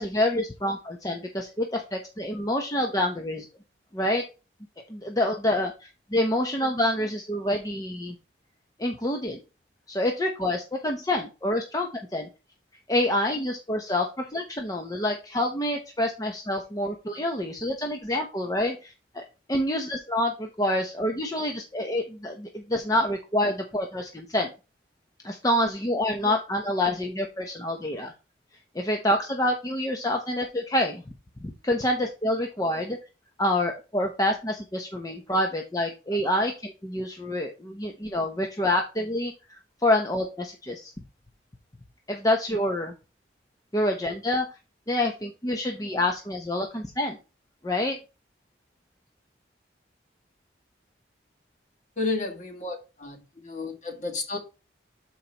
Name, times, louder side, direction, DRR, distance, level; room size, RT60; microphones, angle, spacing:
voice 1, 0.0-3.5 3.9-4.2 4.9-8.2 8.8-9.4 9.9-12.3 12.9-19.2 19.5-24.5 25.2-28.1 28.7-31.0 31.4-33.0 33.4-40.9 42.1-42.9 43.7-44.6 44.9-47.2 47.6-48.0, left 1 dB, 20° left, 2 dB, 0.8 m, -27 dB
voice 2, 52.0-54.4, left 3 dB, 40° left, 2 dB, 1.9 m, -32 dB
12.0 x 4.6 x 2.9 m, 0.30 s
head